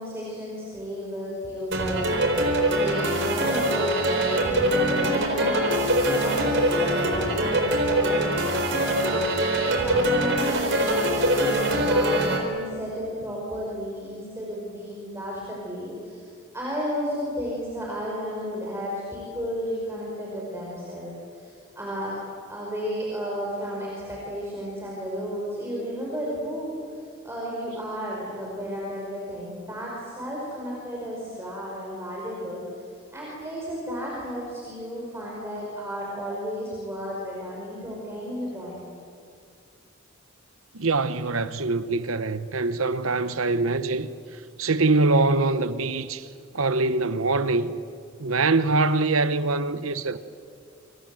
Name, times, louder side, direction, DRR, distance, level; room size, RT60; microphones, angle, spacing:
voice 1, 0.0-22.2 22.5-32.8 33.1-38.9, equal, 10° right, 5.2 m, -33 dB
sound 1, 1.7-12.4, right 1 dB, 60° right, 4.3 m, -23 dB
voice 2, 40.7-46.3 46.5-47.7 48.2-50.2, right 3 dB, 80° right, 1.1 m, -24 dB
28.5 x 26.5 x 7.8 m
head